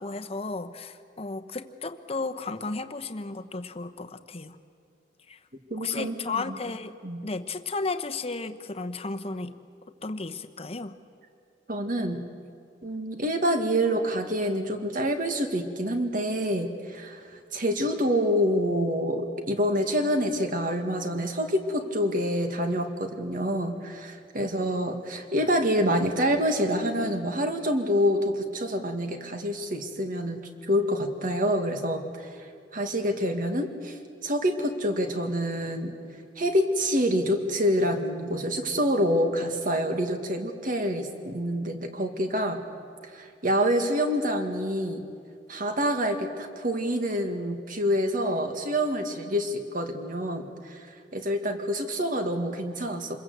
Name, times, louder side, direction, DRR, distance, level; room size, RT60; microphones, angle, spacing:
voice 1, 0.0-4.6 5.3-5.4 5.7-9.6 10.0-10.9, left 3 dB, 35° left, 8 dB, 1.0 m, -34 dB
voice 2, 5.7-6.5 7.0-7.2 11.7-12.2 12.8-17.2 17.5-32.3 32.7-35.9 36.4-42.6 43.1-45.0 45.5-50.9 51.1-53.2, equal, 50° right, 5 dB, 2.0 m, -27 dB
27.0 x 22.0 x 8.1 m, 2.4 s
head